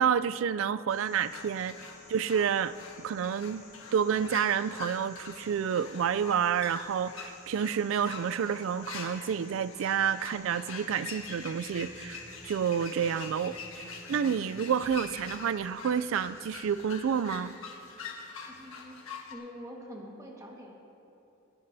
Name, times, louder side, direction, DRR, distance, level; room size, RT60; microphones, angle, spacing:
voice 1, 0.0-1.8 2.1-3.6 3.9-13.6 14.1-17.5, right 7 dB, 65° right, 15 dB, 0.3 m, -29 dB
sound 1, 0.9-17.3, left 2 dB, 15° left, 3.2 m, -57 dB
sound 2, 1.3-19.3, left 4 dB, 80° left, 1.4 m, -44 dB
sound 3, 10.9-16.5, right 2 dB, 40° right, 0.7 m, -52 dB
voice 2, 18.4-19.0 19.3-20.7, equal, 15° right, -1 dB, 1.5 m, -45 dB
26.0 x 9.5 x 2.7 m, 2.9 s
head